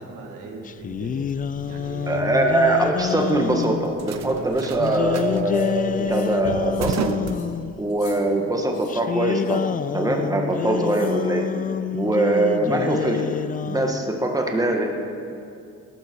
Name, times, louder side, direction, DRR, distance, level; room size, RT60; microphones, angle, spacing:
voice 1, 0.0-1.3 1.6-2.3 11.7-12.2, right 3 dB, 80° right, 1 dB, 2.2 m, -39 dB
sound 1, 0.7-3.9 4.8-7.8 8.9-14.1, left 8 dB, 30° left, 0.3 m, -27 dB
sound 2, 0.8-8.1, right 8 dB, 60° right, 0.7 m, -35 dB
voice 2, 2.1-7.2 7.8-11.4 11.9-13.4 13.6-14.9, right 2 dB, 10° right, 1 dB, 1.8 m, -22 dB
sound 3, 5.5-5.7 6.1-6.4 6.7-7.0 7.3-7.5 7.9-8.2 8.7-8.9 9.4-9.7 10.8-11.2, left 6 dB, 80° left, 3.0 m, -48 dB
18.0 x 12.0 x 4.7 m, 2.5 s
cardioid pair, 90°, 30 cm